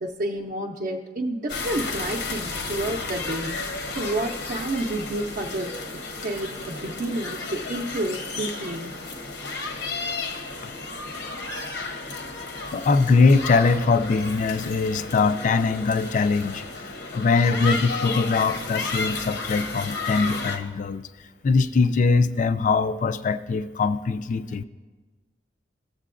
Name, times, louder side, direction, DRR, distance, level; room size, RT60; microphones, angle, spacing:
voice 1, 0.0-3.6 3.9-5.7 6.2-8.9, right 1 dB, 50° right, 0 dB, 0.6 m, -30 dB
sound 1, 1.5-20.6, left 3 dB, 85° left, 0.9 m, -33 dB
voice 2, 12.7-16.6 17.1-21.1 21.4-24.6, left 4 dB, 45° left, 12 dB, 0.3 m, -22 dB
16.5 x 7.4 x 2.5 m, 1.3 s
head